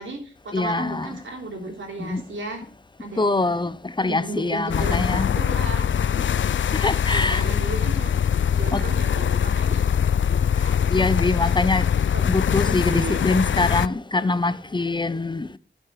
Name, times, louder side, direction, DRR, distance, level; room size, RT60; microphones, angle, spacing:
voice 1, 0.0-2.6 3.0-3.5 4.0-5.8 7.1-8.1 8.5-9.8 12.1-12.3 12.6-13.3, right 2 dB, 80° right, 3.3 m, -34 dB
voice 2, 0.5-1.1 2.0-2.2 3.2-5.3 6.7-7.4 8.7-8.9 10.6-11.9 12.2-15.6, left 3 dB, 25° left, 0.6 m, -24 dB
sound 1, 4.7-13.9, left 8 dB, 80° left, 0.4 m, -22 dB
11.5 x 6.4 x 6.3 m
wide cardioid pair, 65°, 20 cm